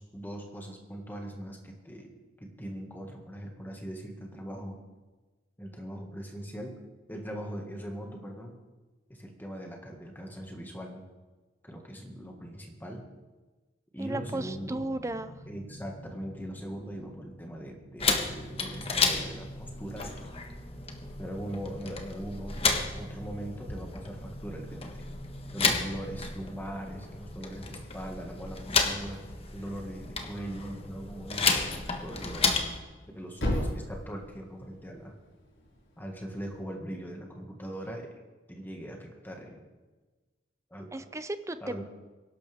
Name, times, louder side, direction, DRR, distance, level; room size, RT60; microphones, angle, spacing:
voice 1, 0.0-4.8 5.6-6.8 7.1-8.6 9.1-11.0 11.6-13.1 13.9-14.8 15.5-20.3 21.2-25.0 25.5-29.2 29.5-32.5 33.2-35.1 36.0-38.1 38.5-39.6 40.7-41.1 41.6-41.8, equal, 10° left, 1 dB, 1.9 m, -40 dB
voice 2, 14.0-15.4 40.9-41.8, right 2 dB, 15° right, 11 dB, 0.6 m, -35 dB
sound 1, 14.1-26.6, equal, 65° left, 6.0 m, -48 dB
sound 2, 18.0-32.8, left 4 dB, 30° left, 1.3 m, -32 dB
Thump thud, 32.5-36.6, equal, 85° left, 5.1 m, -37 dB
22.5 x 12.0 x 3.6 m, 1.2 s
head